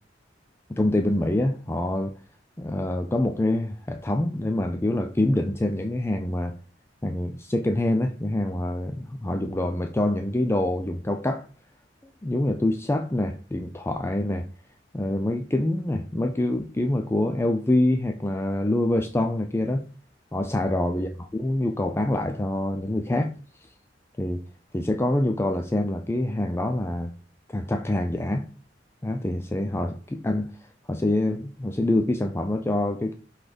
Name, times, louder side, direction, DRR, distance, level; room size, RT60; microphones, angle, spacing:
voice 1, 0.7-2.1 2.6-6.6 7.0-11.5 12.2-14.5 14.9-19.8 20.3-23.3 24.2-24.4 24.7-27.1 27.5-28.5 29.0-30.5 30.9-33.1, left 1 dB, 15° left, 0.4 m, -25 dB
6.0 x 4.1 x 5.0 m
head